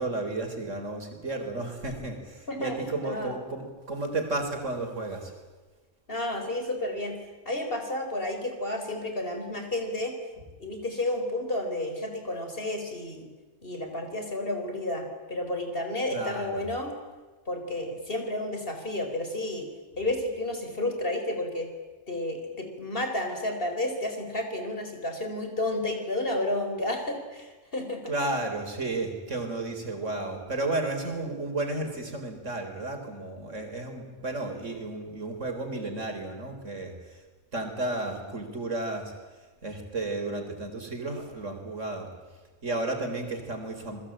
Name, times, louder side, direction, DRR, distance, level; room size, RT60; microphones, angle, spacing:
voice 1, 0.0-5.3 16.1-16.7 28.1-37.2 37.5-39.1 39.6-42.1 42.6-44.0, right 2 dB, 75° right, 4 dB, 4.5 m, -33 dB
voice 2, 3.0-3.3 6.1-7.2 7.5-10.2 10.6-13.3 13.6-16.9 17.5-19.7 20.0-21.7 22.1-28.0, left 1 dB, 45° left, 5 dB, 4.6 m, -31 dB
28.5 x 20.5 x 8.8 m, 1.3 s
omnidirectional pair, 1.3 m